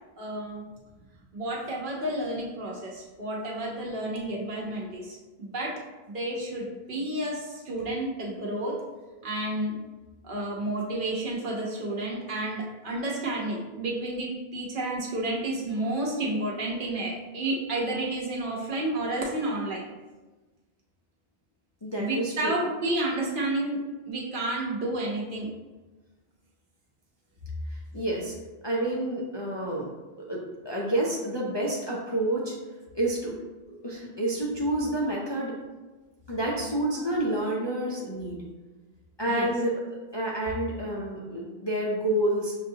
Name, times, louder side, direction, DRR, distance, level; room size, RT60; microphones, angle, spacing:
voice 1, 0.2-0.6 1.3-5.7 6.1-8.7 9.2-9.7 10.2-19.8 22.0-25.5 39.3-39.5, right 1 dB, 55° right, -4 dB, 1.1 m, -31 dB
voice 2, 21.8-22.5 27.7-28.3 28.6-29.9 30.3-32.6 32.9-33.4 33.7-35.5 36.3-38.4 39.2-39.7 40.1-42.5, right 1 dB, 35° left, -5 dB, 0.5 m, -29 dB
6.1 x 2.5 x 2.7 m, 1.2 s
omnidirectional pair, 1.1 m